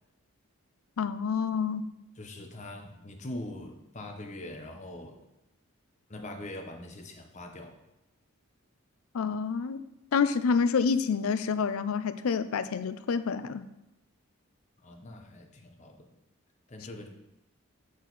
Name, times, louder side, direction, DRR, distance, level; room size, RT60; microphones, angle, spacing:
voice 1, 1.0-1.8 9.1-9.8 10.1-13.6, left 5 dB, 80° left, 12 dB, 0.4 m, -28 dB
voice 2, 2.2-5.2 6.1-7.8 14.8-16.2 16.7-17.1, left 1 dB, 35° left, 3 dB, 0.8 m, -42 dB
6.4 x 6.3 x 4.0 m, 0.92 s
head